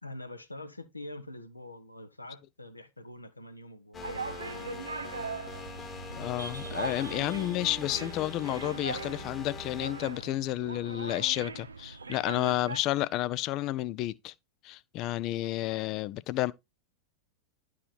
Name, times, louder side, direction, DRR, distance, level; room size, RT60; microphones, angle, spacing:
voice 1, 0.0-5.3, left 1 dB, 85° left, 1.1 m, -45 dB
sound 1, 3.9-10.2, left 4 dB, 20° left, 1.3 m, -43 dB
sound 2, 4.0-12.8, right 4 dB, 75° right, 0.6 m, -40 dB
voice 2, 6.2-14.3 14.6-16.5, left 15 dB, 40° left, 0.5 m, -31 dB
11.0 x 4.9 x 4.2 m
figure-of-eight pair, 90°, 0 cm